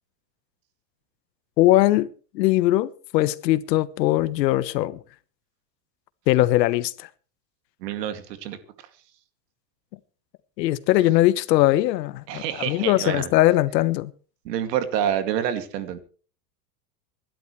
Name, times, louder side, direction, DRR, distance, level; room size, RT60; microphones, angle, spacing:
voice 1, 1.6-2.1 2.3-5.0 6.3-7.1 10.6-14.1, left 16 dB, 80° left, 1.2 m, -20 dB
voice 2, 7.8-8.6 12.3-13.3 14.4-16.0, right 10 dB, 75° right, 2.5 m, -27 dB
27.0 x 12.0 x 3.2 m
supercardioid pair, 170°, 49 cm